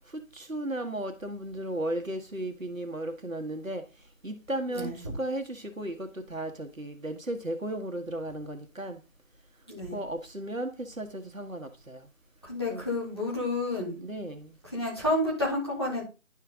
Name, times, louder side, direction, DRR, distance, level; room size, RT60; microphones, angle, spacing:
voice 1, 0.3-3.8 4.2-9.0 9.9-12.0 12.7-12.8 14.0-14.5, right 1 dB, 75° right, 1.5 m, -35 dB
voice 2, 9.7-10.0 12.4-14.0 14.7-16.0, left 1 dB, 20° left, 2.2 m, -30 dB
11.0 x 4.6 x 3.7 m
figure-of-eight pair, 175°, 40 cm